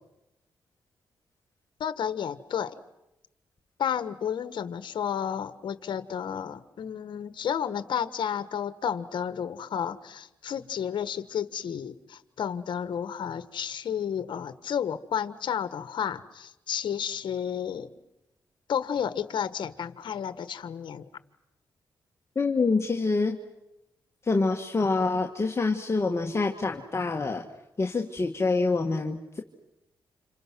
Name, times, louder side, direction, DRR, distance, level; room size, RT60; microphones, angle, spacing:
voice 1, 1.8-2.7 3.8-17.9 18.7-21.1, left 8 dB, 75° left, 12 dB, 1.3 m, -32 dB
voice 2, 22.4-23.4 24.2-27.5 27.8-29.4, left 3 dB, 35° left, 2 dB, 1.8 m, -26 dB
30.0 x 27.5 x 6.2 m, 0.91 s
cardioid pair, 70°, 8 cm